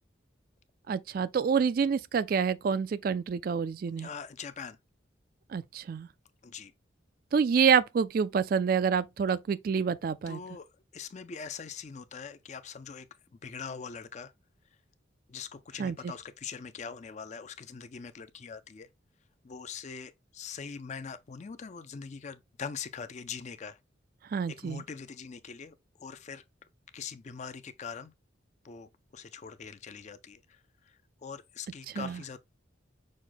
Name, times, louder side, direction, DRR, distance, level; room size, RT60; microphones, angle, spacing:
voice 1, 0.9-4.1 5.5-6.1 7.3-10.4 15.8-16.1 24.3-24.8 32.0-32.2, right 6 dB, 50° right, 0.3 m, -27 dB
voice 2, 4.0-4.8 6.4-6.7 10.3-13.1 13.4-14.3 15.3-18.9 19.4-23.8 24.5-26.4 26.9-28.1 28.6-32.4, left 6 dB, 35° left, 0.4 m, -42 dB
6.3 x 2.1 x 3.8 m
head